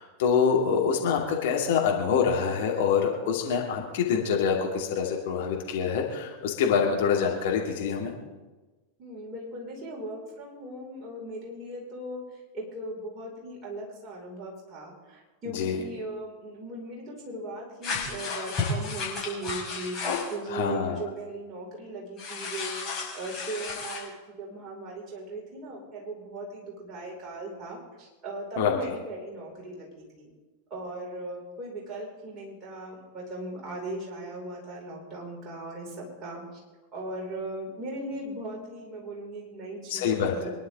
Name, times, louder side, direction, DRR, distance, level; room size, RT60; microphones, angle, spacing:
voice 1, 0.0-8.1 15.5-15.8 20.5-21.0 28.6-28.9 39.9-40.3, left 6 dB, 55° left, 0 dB, 2.5 m, -25 dB
voice 2, 9.0-22.8 23.1-30.3 30.7-36.4 36.9-40.5, right 1 dB, 25° right, -3 dB, 5.5 m, -38 dB
sound 1, 17.8-20.3 22.2-24.0, left 4 dB, 25° left, 5.7 m, -33 dB
25.5 x 11.0 x 3.8 m, 1.2 s
figure-of-eight pair, 90°, 0 cm